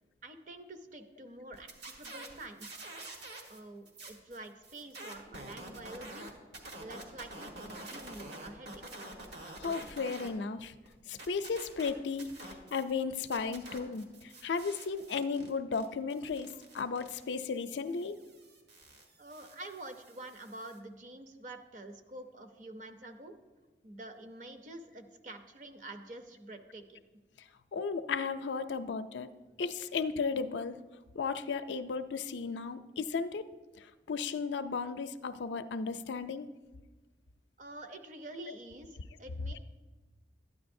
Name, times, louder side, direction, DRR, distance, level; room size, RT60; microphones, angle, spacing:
voice 1, 0.2-2.8 3.5-6.3 6.8-8.8 19.2-23.4 23.8-27.0 37.6-39.6, right 2 dB, 45° right, 7 dB, 0.6 m, -47 dB
sound 1, 1.5-3.6 3.8-10.3 10.6-12.9 13.2-20.8, right 2 dB, 75° right, 1.4 m, -48 dB
voice 2, 9.6-10.8 11.1-18.2 27.7-29.3 29.6-30.8 31.1-33.5 33.8-36.5, left 5 dB, 85° left, 10 dB, 0.4 m, -35 dB
12.5 x 9.4 x 2.6 m, 1.2 s
head